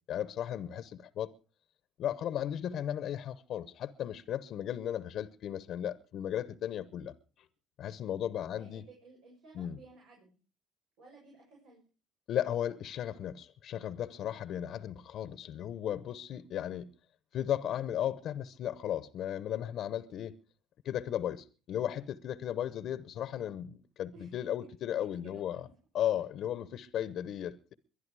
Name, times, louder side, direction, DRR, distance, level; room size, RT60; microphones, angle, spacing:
voice 1, 0.1-1.3 2.0-7.1 7.8-8.8 9.5-9.8 12.3-16.9 17.3-20.4 20.8-25.6 25.9-27.7, left 10 dB, 65° left, 1.0 m, -35 dB
voice 2, 8.6-10.4 11.0-11.8 23.2-23.6 24.1-24.3 25.0-25.7, right 3 dB, 80° right, 7.1 m, -56 dB
23.0 x 11.0 x 4.8 m
supercardioid pair, 75°, 0 cm